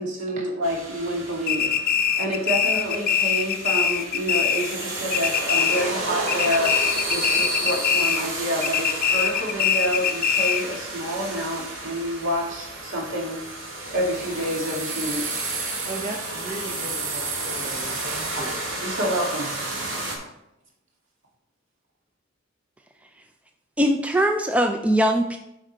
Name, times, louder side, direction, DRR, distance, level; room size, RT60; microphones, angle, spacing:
voice 1, 0.0-1.7 2.2-6.8 7.1-13.4 13.9-15.5 18.4-18.5 18.8-19.5, equal, 70° right, -2 dB, 2.0 m, -28 dB
sound 1, 0.6-20.2, right 2 dB, 85° right, 1.9 m, -32 dB
sound 2, 1.5-4.8 5.1-6.0 6.3-8.3 8.6-10.8, left 8 dB, 50° left, 0.5 m, -23 dB
voice 2, 15.9-18.6, right 2 dB, 35° right, 0 dB, 0.7 m, -36 dB
voice 3, 23.8-25.4, equal, 5° right, 5 dB, 0.4 m, -21 dB
7.6 x 5.3 x 4.0 m, 0.83 s
head